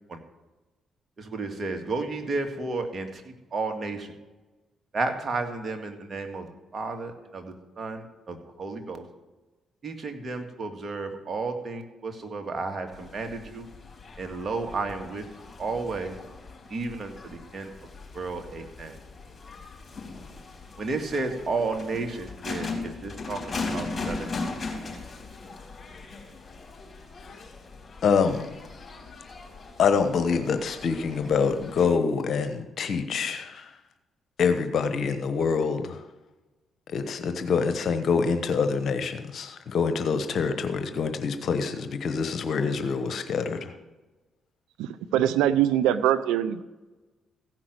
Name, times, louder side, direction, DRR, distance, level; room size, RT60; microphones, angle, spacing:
voice 1, 1.2-4.1 4.9-9.1 9.8-13.7 14.2-15.3 15.6-16.2 16.7-17.7 18.1-18.9 20.8-24.3, right 3 dB, 45° right, 5 dB, 2.0 m, -32 dB
sound 1, 12.9-31.9, left 3 dB, 35° left, 4.0 m, -39 dB
voice 2, 28.0-28.5 29.8-33.7 34.4-36.0 36.9-43.7, left 5 dB, 65° left, 9 dB, 1.0 m, -26 dB
voice 3, 44.8-46.6, right 11 dB, 85° right, 14 dB, 0.5 m, -23 dB
15.5 x 6.0 x 7.9 m, 1.2 s
supercardioid pair, 60°, 0 cm